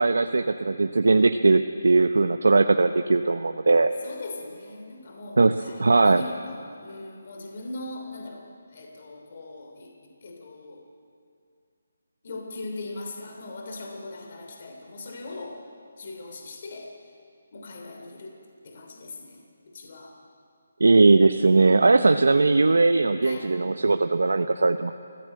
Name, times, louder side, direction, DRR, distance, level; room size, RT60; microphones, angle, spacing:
voice 1, 0.0-3.9 5.4-5.5 5.8-6.2 20.8-24.9, right 3 dB, 90° right, 8 dB, 0.8 m, -19 dB
voice 2, 4.0-10.8 12.2-15.6 16.0-16.9 17.5-18.4 18.6-20.2 23.2-23.5, left 2 dB, 40° left, 2 dB, 3.0 m, -40 dB
29.5 x 15.5 x 7.7 m, 2.3 s
hypercardioid pair, 170°, 0 cm